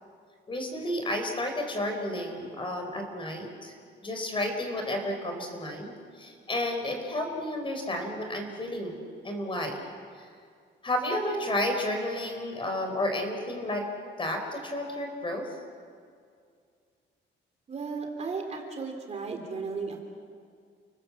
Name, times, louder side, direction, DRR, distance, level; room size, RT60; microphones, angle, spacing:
voice 1, 0.5-3.7 4.0-9.0 9.2-9.9 10.2-10.3 10.8-13.8 14.2-15.5, left 1 dB, 25° left, 4 dB, 4.4 m, -31 dB
voice 2, 17.7-20.0, right 4 dB, 35° right, 3 dB, 3.1 m, -35 dB
30.0 x 19.5 x 7.6 m, 2.2 s
cardioid pair, 130°, 20 cm